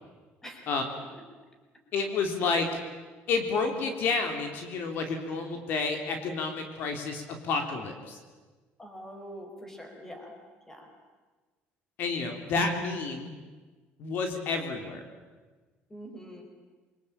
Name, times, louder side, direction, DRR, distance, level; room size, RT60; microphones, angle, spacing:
voice 1, 0.4-0.7 1.1-1.2 8.8-10.3 10.7-10.9 15.9-16.4, equal, 10° left, 4 dB, 4.6 m, -44 dB
voice 2, 1.9-2.8 3.3-8.2 12.0-13.3 14.0-15.0, left 4 dB, 55° left, 5 dB, 3.4 m, -30 dB
28.0 x 24.0 x 8.8 m, 1.3 s
cardioid pair, 165°, 4 cm